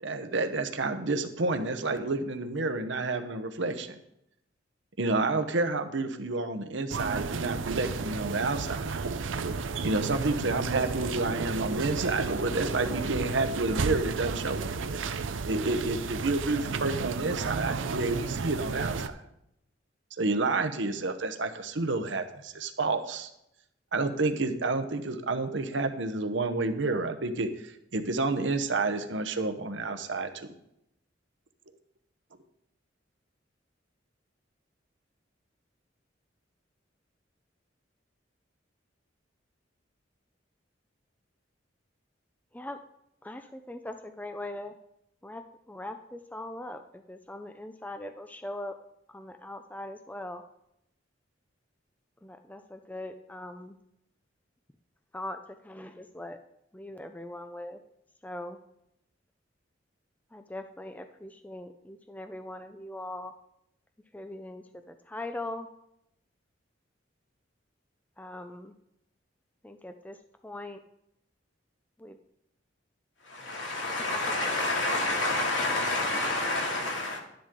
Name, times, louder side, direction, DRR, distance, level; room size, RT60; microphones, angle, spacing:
voice 1, 0.0-4.0 5.0-8.8 9.8-14.7 15.4-19.2 20.2-23.3 23.9-30.5, right 3 dB, 70° right, 7 dB, 1.0 m, -30 dB
sound 1, 6.9-19.1, right 4 dB, 90° right, 0.6 m, -32 dB
voice 2, 43.2-44.7 45.2-48.7 49.1-50.4 52.2-53.7 55.1-55.4 55.6-56.4 56.7-57.8 58.2-58.6 60.3-63.3 64.1-65.7 68.2-68.7 69.6-70.2 70.4-70.8 72.0-72.2 74.0-74.4, left 1 dB, 10° left, 7 dB, 0.5 m, -41 dB
voice 3, 73.2-77.2, left 2 dB, 75° left, 0 dB, 2.4 m, -29 dB
11.5 x 10.5 x 3.8 m, 0.81 s
head